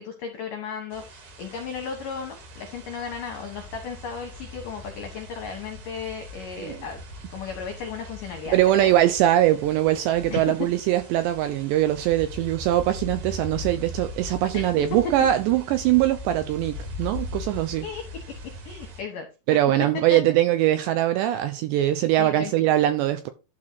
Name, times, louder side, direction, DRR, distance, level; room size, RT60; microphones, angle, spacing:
voice 1, 0.0-7.0 7.3-8.9 10.3-10.4 14.5-14.6 14.9-15.0 17.8-18.0 18.6-19.3 20.1-20.2 22.2-22.5, left 6 dB, 75° left, 2.0 m, -35 dB
sound 1, 0.9-19.0, left 1 dB, 45° right, 3.1 m, -40 dB
voice 2, 8.5-17.9 19.5-23.3, right 13 dB, 85° right, 2.5 m, -22 dB
12.0 x 4.3 x 4.7 m
omnidirectional pair, 5.8 m